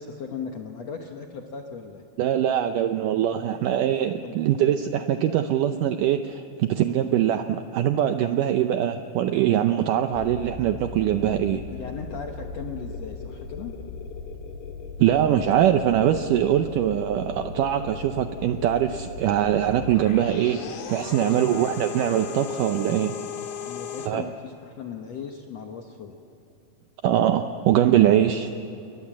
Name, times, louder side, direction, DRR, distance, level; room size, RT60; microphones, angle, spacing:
voice 1, 0.0-2.0 4.2-4.3 11.5-13.7 21.1-21.6 23.7-26.2 28.2-28.3, left 6 dB, 70° left, 3 dB, 1.6 m, -37 dB
voice 2, 2.2-11.6 15.0-23.1 24.1-24.3 27.0-28.5, right 11 dB, 80° right, 8 dB, 1.9 m, -22 dB
sound 1, 10.1-24.1, left 5 dB, 85° left, 3.9 m, -37 dB
Piano, 21.0-23.4, left 5 dB, 35° right, 7.1 m, -45 dB
29.0 x 22.0 x 7.5 m, 2.9 s
omnidirectional pair, 4.6 m